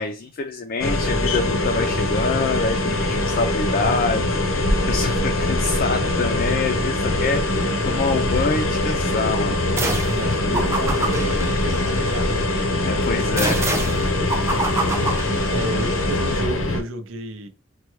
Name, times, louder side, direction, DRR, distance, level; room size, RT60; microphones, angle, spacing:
voice 1, 0.0-4.2 4.5-9.6 12.7-13.6, left 4 dB, 45° left, 0.4 m, -26 dB
sound 1, 0.8-16.8, left 2 dB, 90° left, 0.8 m, -22 dB
sound 2, 9.8-10.2 10.5-12.3 13.4-16.0, right 2 dB, 15° right, 0.5 m, -27 dB
voice 2, 10.0-12.4 14.9-15.2 15.5-17.5, right 2 dB, 75° right, 0.5 m, -31 dB
4.3 x 2.2 x 3.0 m
head